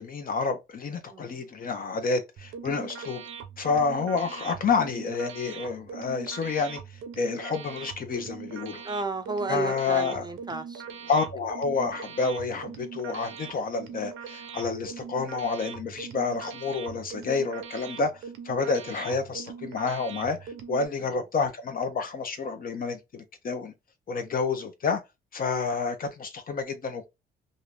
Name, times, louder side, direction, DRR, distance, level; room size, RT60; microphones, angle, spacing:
voice 1, 0.0-3.2 3.6-6.8 7.2-8.8 9.5-10.3 11.1-23.7 24.1-25.0 25.3-27.1, left 4 dB, 45° left, 0.7 m, -29 dB
voice 2, 1.1-1.4 8.8-10.8, right 3 dB, 20° right, 0.4 m, -32 dB
sound 1, 2.4-20.9, right 7 dB, 85° right, 0.6 m, -41 dB
2.7 x 2.5 x 3.3 m
cardioid pair, 90°, 20 cm